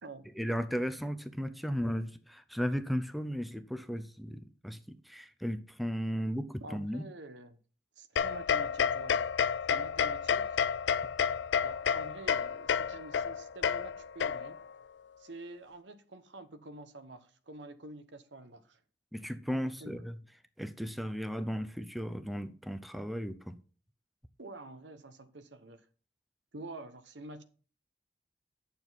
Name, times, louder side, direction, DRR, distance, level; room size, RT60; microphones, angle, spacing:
voice 1, 0.4-7.0 19.1-20.2 20.6-23.6, equal, ahead, 0.5 m, -35 dB
voice 2, 6.6-7.6 8.0-9.3 9.7-10.6 11.6-14.6 15.2-18.8 19.6-20.0 24.4-25.8 26.5-27.4, right 2 dB, 75° right, 1.0 m, -48 dB
sound 1, 8.2-14.7, left 7 dB, 75° left, 0.4 m, -30 dB
8.9 x 7.0 x 4.1 m
head